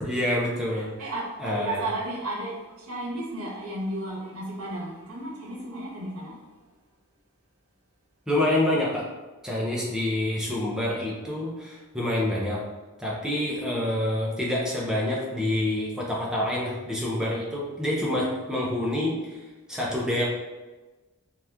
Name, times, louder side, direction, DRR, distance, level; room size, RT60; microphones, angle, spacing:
voice 1, 0.0-1.1 1.4-1.8 8.3-9.0 9.4-12.6 13.0-19.4 19.7-20.3, left 1 dB, 5° right, -5 dB, 0.6 m, -27 dB
voice 2, 0.7-6.4, right 1 dB, 75° right, -3 dB, 0.9 m, -34 dB
2.9 x 2.4 x 3.4 m, 1.2 s
head